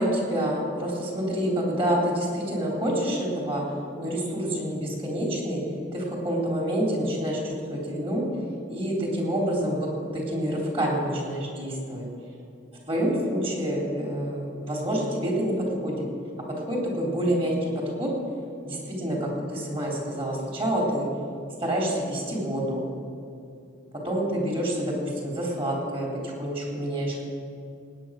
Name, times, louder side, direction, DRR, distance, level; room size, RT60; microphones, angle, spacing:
voice 1, 0.0-3.6 4.0-5.6 5.9-8.3 8.7-12.0 12.9-16.1 16.7-18.1 18.6-21.1 21.6-22.8 24.0-27.3, equal, 30° right, -2 dB, 3.4 m, -27 dB
18.5 x 9.4 x 6.4 m, 2.6 s
head